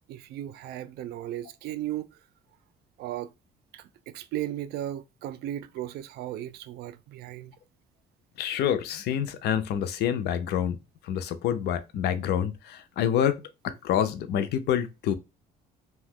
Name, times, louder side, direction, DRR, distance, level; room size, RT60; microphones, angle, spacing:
voice 1, 0.1-2.1 3.0-3.3 3.7-7.5, right 13 dB, 70° right, 0.4 m, -36 dB
voice 2, 8.4-10.8 11.0-15.1, left 9 dB, 75° left, 0.5 m, -27 dB
2.8 x 2.2 x 3.5 m
cardioid pair, 110°, 17 cm